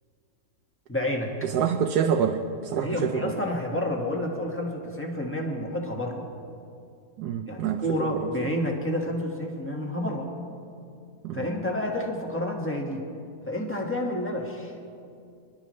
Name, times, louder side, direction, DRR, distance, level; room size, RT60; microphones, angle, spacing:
voice 1, 0.9-1.3 2.7-6.2 7.5-10.3 11.3-13.0 13.5-14.7, left 1 dB, 10° left, 0 dB, 1.6 m, -29 dB
voice 2, 1.4-3.3 7.2-8.2 11.2-11.5, right 7 dB, 90° right, 3 dB, 1.2 m, -27 dB
25.5 x 12.0 x 3.2 m, 2.5 s
omnidirectional pair, 1.6 m